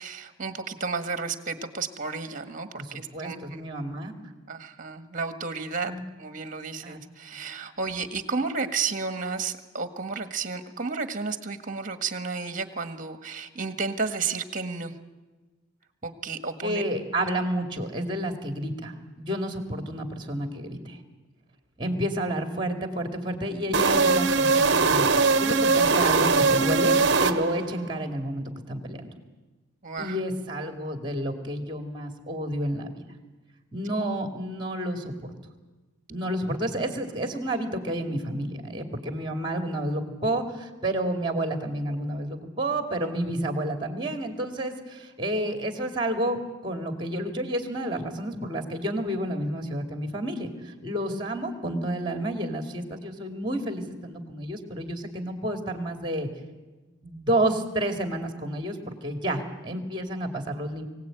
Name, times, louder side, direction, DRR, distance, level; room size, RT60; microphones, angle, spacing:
voice 1, 0.0-3.6 4.5-5.9 6.2-14.9 16.0-16.8 29.8-30.2, right 4 dB, 40° right, 9 dB, 1.6 m, -32 dB
voice 2, 2.8-4.1 5.8-6.0 6.8-7.0 7.3-7.5 16.6-21.0 21.8-29.1 30.0-33.0 33.7-35.1 36.1-46.4 46.6-56.3 57.0-60.9, right 1 dB, 20° right, 5 dB, 2.5 m, -30 dB
sound 1, 23.7-27.8, right 4 dB, 55° right, 1.0 m, -21 dB
23.5 x 17.0 x 9.1 m, 1.2 s
head